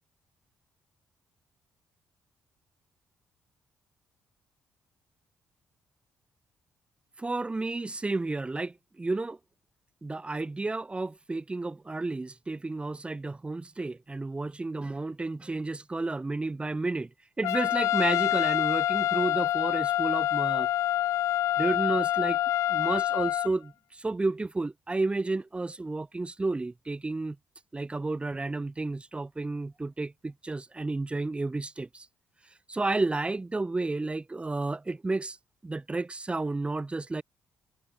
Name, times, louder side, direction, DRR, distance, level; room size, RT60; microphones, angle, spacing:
voice 1, 7.2-9.4 10.0-17.1 17.4-20.7 21.6-22.4 22.7-27.4 27.7-32.1 32.7-35.4 35.6-37.2, right 3 dB, 20° right, 3.5 m, -31 dB
Trumpet, 17.4-23.5, left 13 dB, 80° left, 3.9 m, -26 dB
supercardioid pair, 70°, 5 cm